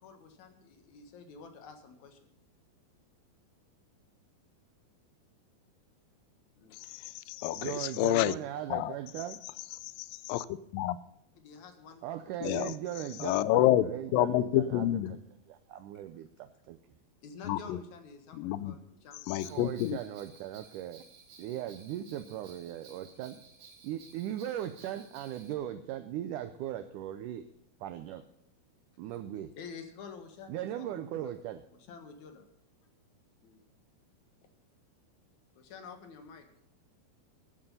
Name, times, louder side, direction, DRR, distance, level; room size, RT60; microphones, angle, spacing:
voice 1, 0.0-2.2 6.5-6.9 11.4-12.6 15.0-15.1 15.9-16.0 17.2-20.0 29.1-29.2 29.6-31.3 31.7-32.5 33.4-33.6 35.6-36.4, left 5 dB, 60° left, 6 dB, 2.5 m, -50 dB
voice 2, 6.9-8.4 8.7-9.0 10.0-10.5 10.7-11.0 12.4-12.7 13.2-15.2 17.4-17.8 18.3-18.8 19.3-20.0, left 14 dB, 80° left, 16 dB, 2.2 m, -28 dB
voice 3, 7.6-9.4 12.0-15.2 15.5-16.8 19.5-21.1 21.4-23.4 23.8-27.4 27.8-28.2 29.0-29.5 30.5-31.6, right 12 dB, 85° right, 11 dB, 1.8 m, -38 dB
Bell, 19.4-25.5, right 5 dB, 55° right, 2.7 m, -56 dB
13.5 x 9.9 x 5.5 m, 0.74 s
omnidirectional pair, 4.4 m